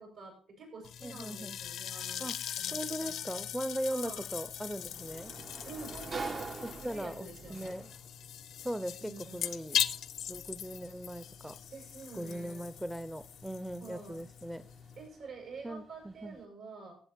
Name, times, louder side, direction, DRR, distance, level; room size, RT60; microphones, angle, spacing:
voice 1, 0.0-2.3 2.6-3.4 3.9-4.2 5.6-7.8 9.0-9.5 11.7-12.6 13.8-14.3 15.0-17.0, right 4 dB, 75° right, 1 dB, 7.2 m, -48 dB
sound 1, 0.8-15.1, left 10 dB, 75° left, 0.6 m, -40 dB
voice 2, 1.0-1.6 2.2-2.4 2.7-5.3 6.6-7.9 8.6-9.8 10.3-11.6 12.1-14.7 15.6-16.4, right 1 dB, 5° right, 13 dB, 0.6 m, -39 dB
Sliding door, 3.8-16.4, right 4 dB, 40° right, 0.7 m, -48 dB
14.5 x 7.8 x 4.4 m, 0.43 s
cardioid pair, 90°, 0 cm